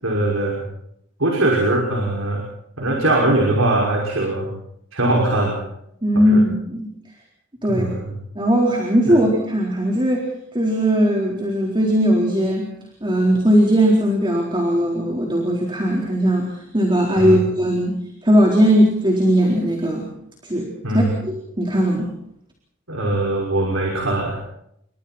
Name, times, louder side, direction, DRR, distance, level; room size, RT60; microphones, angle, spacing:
voice 1, 0.0-0.6 1.2-2.4 2.8-4.5 4.9-5.6 6.1-6.4 7.7-8.1 9.1-9.2 17.2-17.4 20.8-21.1 22.9-24.4, right 1 dB, 80° right, -1 dB, 5.8 m, -21 dB
voice 2, 6.0-6.9 7.6-7.9 8.4-10.3 10.5-12.7 13.0-18.0 18.2-20.1 20.4-22.1, equal, 25° right, 0 dB, 4.3 m, -18 dB
29.5 x 24.5 x 4.5 m, 0.75 s
head